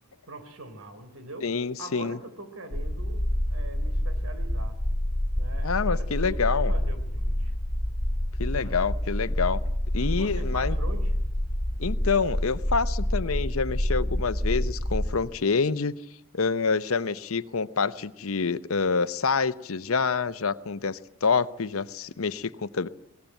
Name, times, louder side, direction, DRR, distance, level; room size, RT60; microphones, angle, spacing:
voice 1, 0.3-1.5 1.8-4.8 5.4-7.5 8.5-8.8 10.2-11.1, right 2 dB, 80° right, 9 dB, 3.6 m, -42 dB
voice 2, 1.4-2.2 5.6-6.7 8.4-9.6 9.9-10.8 11.8-15.9 16.3-22.9, left 5 dB, 85° left, 14 dB, 0.8 m, -27 dB
sound 1, 2.7-15.2, left 1 dB, 35° left, 1.9 m, -28 dB
22.0 x 19.0 x 9.1 m, 0.78 s
head